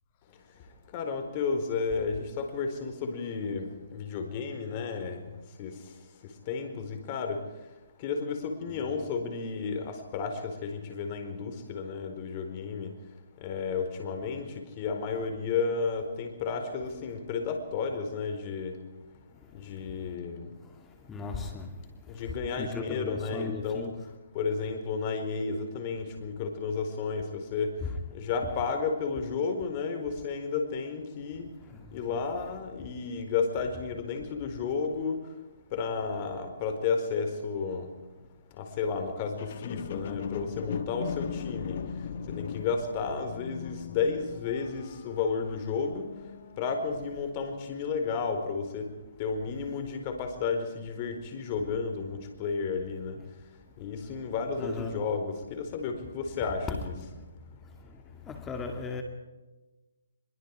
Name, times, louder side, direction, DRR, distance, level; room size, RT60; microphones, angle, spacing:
voice 1, 0.9-5.2 5.6-5.7 6.5-7.4 8.0-12.9 13.4-14.5 14.8-18.8 19.5-20.5 22.1-23.9 24.3-27.7 28.1-31.5 31.9-35.2 35.7-37.9 38.6-41.8 42.3-46.1 46.6-48.9 49.2-53.2 53.8-57.0, left 5 dB, 30° left, 4.4 m, -32 dB
voice 2, 19.4-20.1 20.6-24.1 27.8-28.0 31.6-32.1 42.2-42.3 49.6-49.7 53.8-55.1 56.7-56.8 57.6-59.0, left 4 dB, 10° left, 2.4 m, -39 dB
sound 1, 39.4-46.8 47.4-47.5, left 7 dB, 50° left, 1.6 m, -39 dB
24.0 x 23.5 x 4.8 m
hypercardioid pair, 150°, 0 cm